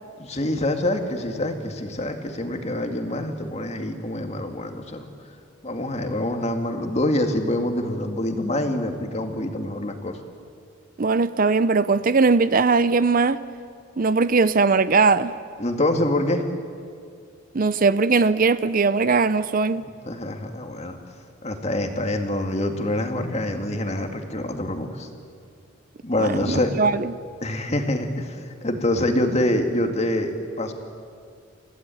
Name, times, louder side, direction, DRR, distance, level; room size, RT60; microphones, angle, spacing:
voice 1, 0.2-5.1 5.6-10.2 15.6-16.4 20.1-21.0 21.4-25.1 26.0-26.7 27.4-30.7, left 1 dB, 30° left, 2.2 m, -25 dB
voice 2, 11.0-13.4 14.0-15.3 17.5-19.8 26.2-27.1, right 4 dB, 45° right, 0.6 m, -20 dB
29.5 x 16.0 x 9.2 m
head